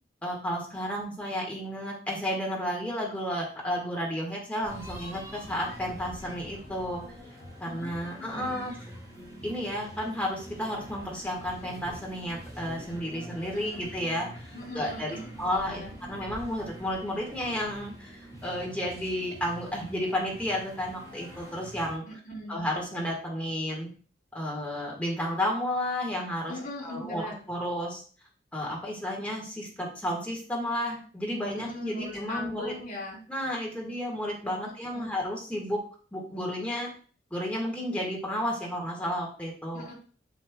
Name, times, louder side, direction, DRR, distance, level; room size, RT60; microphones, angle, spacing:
voice 1, 0.2-7.0 7.6-8.7 9.4-15.8 16.1-22.0 22.5-23.9 24.3-26.5 26.8-28.0 28.5-32.7 33.3-35.8 36.1-36.9 37.3-39.9, equal, 5° left, -3 dB, 1.7 m, -32 dB
sound 1, 4.6-22.0, equal, 20° right, 2.9 m, -45 dB
voice 2, 7.6-8.7 13.5-13.8 14.5-15.9 22.1-22.7 26.5-27.4 31.5-33.2 34.6-35.2 39.7-39.9, left 1 dB, 45° left, -5 dB, 3.1 m, -41 dB
8.5 x 5.6 x 2.3 m, 0.42 s
head